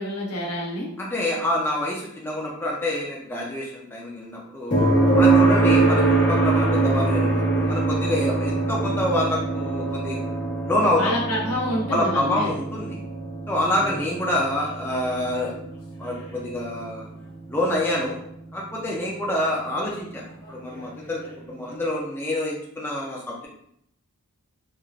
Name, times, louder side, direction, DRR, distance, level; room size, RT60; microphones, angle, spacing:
voice 1, 0.0-0.9 10.9-12.6 13.8-14.1, left 1 dB, 80° left, -3 dB, 0.9 m, -28 dB
voice 2, 1.0-4.8 5.2-10.2 10.6-11.1 11.9-13.0 13.5-15.6 16.0-17.1 17.5-18.2 18.5-23.5, left 1 dB, 10° left, -4 dB, 0.4 m, -27 dB
sound 1, 4.7-18.6 20.8-20.9, right 3 dB, 50° left, 1.0 m, -23 dB
3.1 x 2.4 x 2.4 m, 0.70 s
head